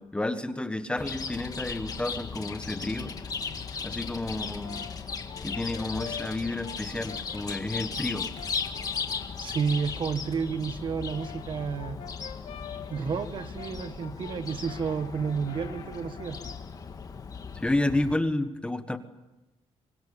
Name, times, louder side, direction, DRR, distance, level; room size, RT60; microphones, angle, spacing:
voice 1, 0.0-3.1 3.8-4.9 5.4-8.3 17.5-19.0, left 2 dB, 10° left, 9 dB, 1.4 m, -30 dB
Chirp tweet, 1.0-18.1, left 5 dB, 35° left, 2.0 m, -37 dB
Brass instrument, 4.3-9.9 10.9-16.7, left 9 dB, 90° left, 3.2 m, -46 dB
voice 2, 9.4-12.0 12.9-16.4, right 6 dB, 45° right, 9 dB, 1.7 m, -31 dB
26.0 x 24.5 x 8.7 m, 1.0 s
cardioid pair, 155°, 11 cm